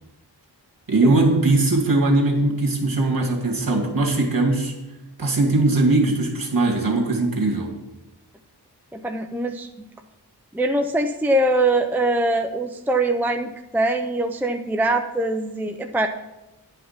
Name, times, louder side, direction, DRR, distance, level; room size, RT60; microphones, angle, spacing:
voice 1, 0.9-4.7 5.2-7.7, right 2 dB, 55° right, 1 dB, 2.4 m, -20 dB
voice 2, 8.9-9.7 10.5-16.1, right 2 dB, 5° right, 5 dB, 0.6 m, -22 dB
10.5 x 5.8 x 5.8 m, 0.98 s
wide cardioid pair, 80°, 41 cm